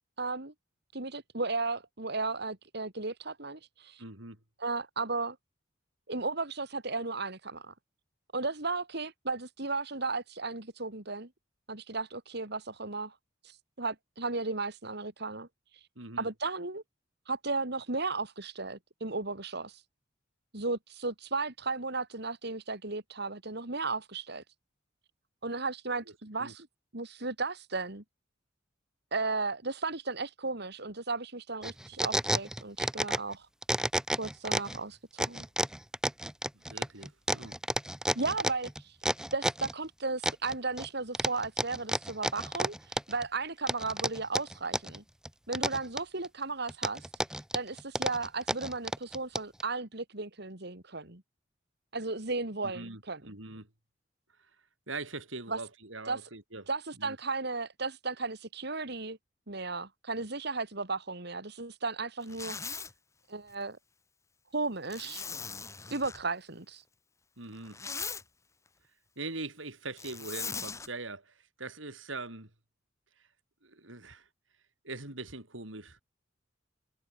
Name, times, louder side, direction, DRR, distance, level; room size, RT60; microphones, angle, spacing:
voice 1, 0.2-0.5 0.9-4.0 4.6-5.4 6.1-7.7 8.3-11.3 11.7-13.1 13.4-15.5 16.2-16.8 17.3-19.8 20.5-24.4 25.4-26.7 26.9-28.0 29.1-33.5 34.2-35.5 38.1-39.0 39.3-45.0 45.5-47.1 47.5-51.2 51.9-53.2 55.5-55.6 56.1-56.2 56.7-59.2 59.5-62.6 63.3-63.8 64.5-65.3 65.9-66.8, right 3 dB, 60° right, 3.2 m, -35 dB
voice 2, 4.0-4.4 16.0-16.3 26.4-26.5 36.5-37.6 52.6-53.7 54.4-54.5 54.9-56.6 57.0-57.2 67.4-67.8 69.2-72.5 73.6-74.3 74.8-76.0, right 3 dB, 90° right, 5.1 m, -42 dB
sound 1, 31.6-33.3 33.6-34.8 35.2-39.7 40.2-40.9 41.1-43.2 43.7-45.0 45.2-46.3 46.7-49.6, right 1 dB, 5° right, 1.4 m, -31 dB
Zipper (clothing), 62.2-62.9 64.9-66.2 67.5-68.2 70.0-70.9, left 5 dB, 15° left, 0.8 m, -39 dB
head